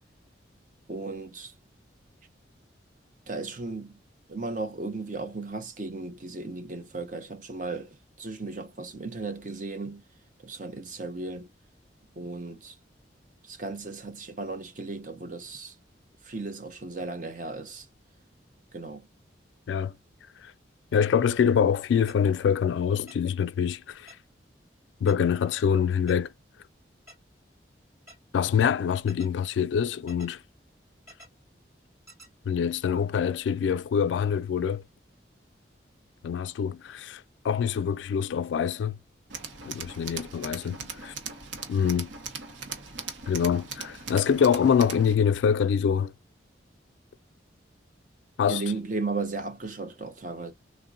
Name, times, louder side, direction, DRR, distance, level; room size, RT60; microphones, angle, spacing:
voice 1, 0.9-1.5 3.3-4.0 4.3-10.0 10.4-11.5 12.2-12.8 13.4-15.8 16.2-17.9 18.7-19.1 48.5-50.5, right 3 dB, 45° right, 0.6 m, -35 dB
voice 2, 20.9-24.2 25.0-26.3 28.3-30.4 32.5-34.8 36.2-39.0 39.6-41.1 41.7-42.1 43.3-46.1 48.4-48.6, left 7 dB, 80° left, 0.3 m, -25 dB
sound 1, 22.1-22.2 23.1-23.2 24.1-24.2 25.1-25.2 26.1-26.2 27.1-27.2 28.1-28.2 29.1-29.3 30.1-30.3 31.1-31.3 32.1-32.3, equal, 15° right, 2.4 m, -48 dB
Tools, 39.3-45.1, right 5 dB, 85° right, 0.7 m, -39 dB
3.6 x 2.1 x 2.5 m
head